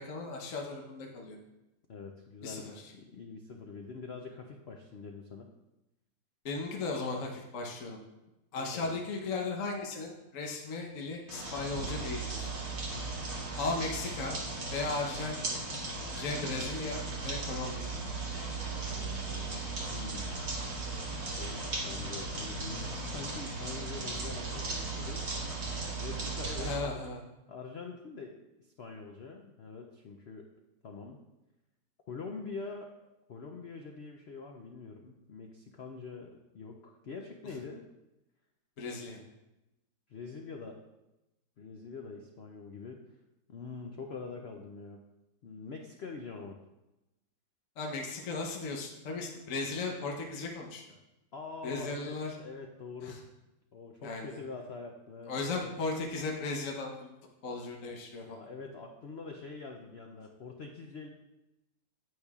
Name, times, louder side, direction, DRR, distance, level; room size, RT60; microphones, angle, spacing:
voice 1, 0.0-1.4 2.4-2.8 6.4-8.0 8.5-12.5 13.6-14.4 14.7-15.6 16.1-17.9 26.6-27.2 38.8-39.2 47.8-50.8 51.6-52.3 53.0-53.2 54.0-54.4 55.3-57.1 57.4-58.5, left 3 dB, 50° left, 0 dB, 1.2 m, -36 dB
voice 2, 1.9-5.5 8.6-8.9 12.9-13.2 18.9-20.3 21.2-25.4 26.0-27.1 27.5-28.3 28.6-30.5 30.8-31.2 32.1-32.9 33.3-37.8 40.1-40.8 41.6-43.0 43.5-45.0 45.4-46.6 51.3-53.2 53.7-55.7 58.2-61.1, left 4 dB, 80° left, 2 dB, 0.5 m, -44 dB
sound 1, 11.3-26.7, right 3 dB, 40° right, 1.6 m, -37 dB
9.3 x 8.2 x 2.4 m, 0.97 s
omnidirectional pair, 2.0 m